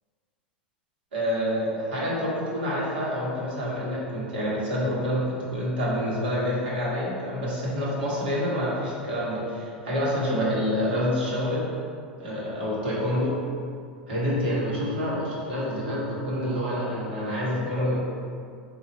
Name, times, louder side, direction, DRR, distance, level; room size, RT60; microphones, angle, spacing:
voice 1, 1.1-11.7 12.2-13.3 14.1-18.0, equal, 70° right, -6 dB, 1.4 m, -27 dB
4.0 x 2.7 x 4.3 m, 2.2 s
hypercardioid pair, 90°, 5 cm